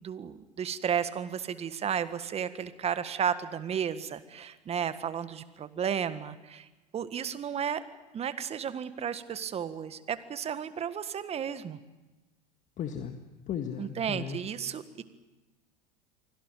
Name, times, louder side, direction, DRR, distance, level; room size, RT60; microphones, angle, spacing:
voice 1, 0.0-6.7 6.9-7.8 8.1-11.8 13.8-15.0, right 8 dB, 30° right, 12 dB, 1.6 m, -33 dB
voice 2, 12.8-13.2 13.5-14.4, left 8 dB, 35° left, 6 dB, 1.8 m, -35 dB
24.5 x 17.5 x 9.2 m, 1.1 s
hypercardioid pair, 85°, 21 cm